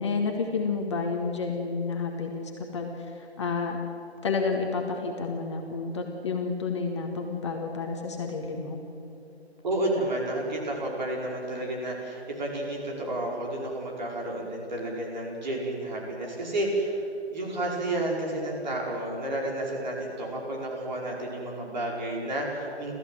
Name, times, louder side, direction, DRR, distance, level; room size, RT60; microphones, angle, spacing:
voice 1, 0.0-3.8 4.2-8.8, left 4 dB, 25° left, 1 dB, 1.7 m, -30 dB
voice 2, 9.6-17.0 17.3-22.9, right 1 dB, 45° right, -2 dB, 5.3 m, -31 dB
29.5 x 14.5 x 7.7 m, 2.8 s
figure-of-eight pair, 155°, 32 cm